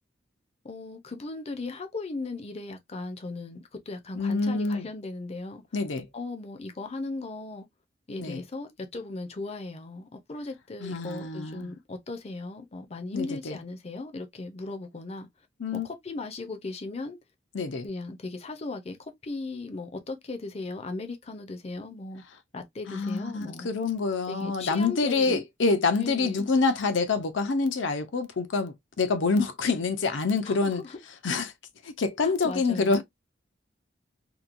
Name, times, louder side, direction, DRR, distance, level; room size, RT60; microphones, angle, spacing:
voice 1, 0.6-5.6 6.1-7.7 8.1-15.3 15.7-17.2 17.8-22.2 22.5-23.7 24.3-25.4 26.0-26.5 30.4-31.0 32.2-33.0, left 3 dB, 35° left, 0.5 m, -37 dB
voice 2, 4.1-4.9 5.7-6.1 8.2-8.4 10.8-11.7 13.1-13.6 15.6-15.9 17.5-17.9 22.9-30.8 31.2-31.5 31.8-33.0, left 4 dB, 85° left, 0.6 m, -26 dB
2.9 x 2.2 x 2.5 m
head